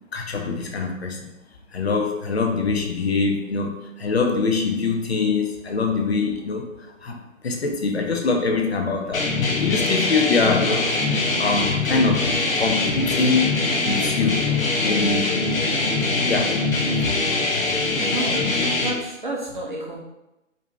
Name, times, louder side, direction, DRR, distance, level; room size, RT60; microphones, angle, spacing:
voice 1, 0.1-1.2 1.7-6.7 7.0-9.3 9.6-10.9 11.4-13.6 13.8-14.5 14.8-15.4 16.3-16.6, left 4 dB, 55° left, 2 dB, 0.4 m, -23 dB
sound 1, 9.1-18.9, left 3 dB, 90° left, 0.7 m, -22 dB
voice 2, 17.9-20.0, right 2 dB, 40° right, -3 dB, 0.5 m, -31 dB
2.9 x 2.6 x 2.2 m, 0.93 s
figure-of-eight pair, 155°, 39 cm